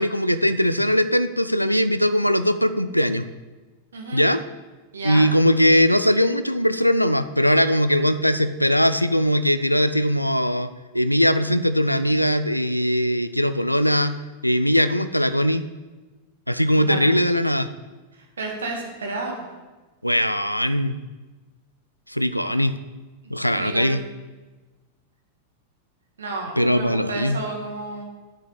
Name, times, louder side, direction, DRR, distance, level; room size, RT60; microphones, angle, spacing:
voice 1, 0.0-3.2 4.1-4.4 5.0-14.1 14.4-15.6 16.5-17.7 20.0-21.0 22.1-22.7 23.3-24.0 26.6-27.4, equal, 90° left, 12 dB, 0.5 m, -20 dB
voice 2, 3.9-4.2 4.9-5.2 16.7-17.1 18.1-19.3 22.4-22.6 23.6-24.0 26.2-28.1, right 3 dB, 70° right, 0 dB, 2.3 m, -32 dB
8.1 x 6.5 x 8.2 m, 1.2 s
figure-of-eight pair, 90°, 0 cm